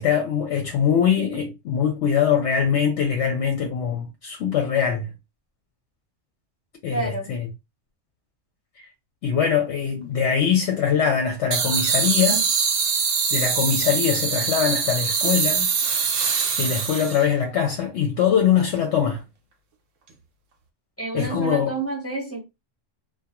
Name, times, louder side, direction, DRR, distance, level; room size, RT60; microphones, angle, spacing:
voice 1, 0.0-5.1 6.8-7.5 8.8-8.9 9.2-12.5 13.3-15.7 16.3-19.2 21.1-21.7, left 7 dB, 65° left, 0.8 m, -22 dB
voice 2, 6.9-7.3 21.0-22.4, right 3 dB, 15° left, 0.8 m, -29 dB
sound 1, 11.5-17.3, right 6 dB, 75° right, 0.9 m, -23 dB
2.4 x 2.2 x 2.9 m
omnidirectional pair, 1.3 m